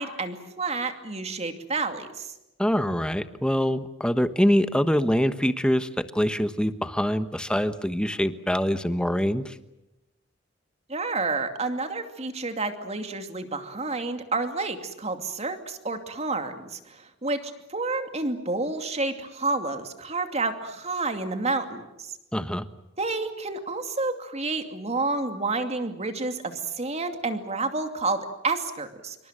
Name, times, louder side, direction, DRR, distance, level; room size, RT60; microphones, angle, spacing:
voice 1, 0.0-2.3 10.9-22.1 23.0-29.2, right 3 dB, 30° right, 7 dB, 2.5 m, -30 dB
voice 2, 2.6-9.5 22.3-22.7, equal, 5° left, 11 dB, 1.2 m, -24 dB
26.5 x 24.5 x 7.6 m, 0.93 s
head